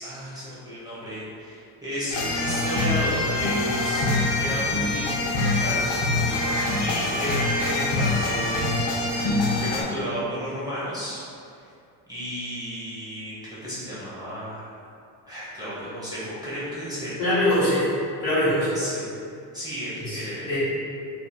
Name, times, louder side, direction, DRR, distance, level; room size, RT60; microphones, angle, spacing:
voice 1, 0.0-5.8 6.3-9.2 9.5-11.3 11.6-11.7 12.1-14.7 15.3-17.2 18.7-19.0 19.5-20.5, equal, 10° right, -10 dB, 0.7 m, -33 dB
sound 1, 2.1-9.8, left 2 dB, 70° left, 0.7 m, -24 dB
voice 2, 17.2-17.9 18.2-18.8 20.0-20.6, left 1 dB, 40° left, -12 dB, 1.1 m, -23 dB
2.7 x 2.7 x 2.2 m, 2.5 s
supercardioid pair, 100°, 47 cm